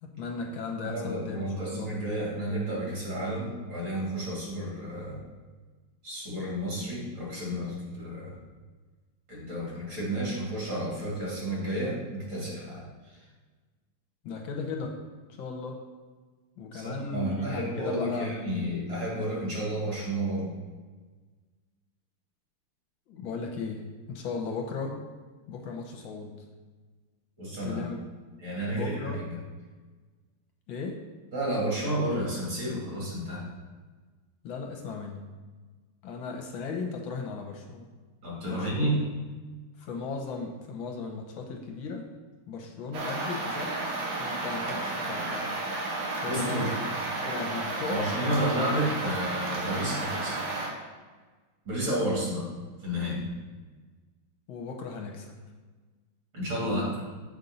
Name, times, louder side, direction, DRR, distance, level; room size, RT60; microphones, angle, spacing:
voice 1, 0.0-1.9 14.2-15.0 15.3-15.8 16.6-18.3 23.1-25.0 25.5-26.4 27.6-28.0 28.7-29.2 30.7-31.0 34.4-35.2 36.0-37.9 38.4-39.0 39.8-42.1 42.5-43.9 44.2-45.5 46.2-46.9 47.2-48.1 54.5-55.4, left 4 dB, 70° left, 2 dB, 1.5 m, -36 dB
voice 2, 0.8-5.2 6.0-8.4 9.3-13.2 16.7-20.5 27.4-27.8 28.4-29.4 31.3-33.5 38.2-39.0 46.2-46.7 47.9-50.4 51.6-52.5 52.8-53.3 56.3-57.0, right 1 dB, 60° right, -6 dB, 3.2 m, -31 dB
sound 1, 42.9-50.7, right 2 dB, 90° right, 2.1 m, -32 dB
7.1 x 5.3 x 4.0 m, 1.4 s
omnidirectional pair, 2.4 m